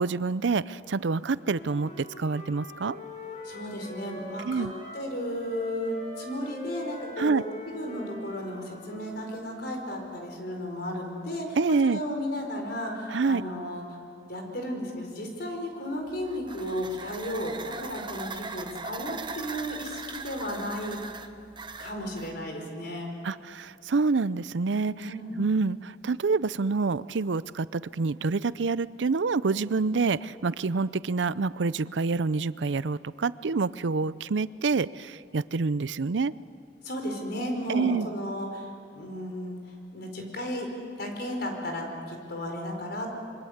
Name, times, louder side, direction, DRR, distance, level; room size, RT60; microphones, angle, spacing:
voice 1, 0.0-3.0 4.4-4.7 7.2-7.4 11.6-12.0 13.1-13.4 23.2-25.1 25.4-36.3 37.7-38.1, right 4 dB, 85° right, 17 dB, 0.6 m, -27 dB
Wind instrument woodwind instrument, 1.3-5.1 5.4-9.4, left 1 dB, 40° left, 6.6 m, -43 dB
voice 2, 3.4-4.7 4.9-14.0 14.3-21.0 21.8-23.1 24.9-25.4 36.8-40.7 41.0-43.1, equal, 65° left, 3 dB, 4.8 m, -34 dB
sound 1, 16.1-22.3, right 4 dB, 25° right, 1.0 m, -40 dB
26.0 x 23.5 x 8.1 m, 2.5 s
head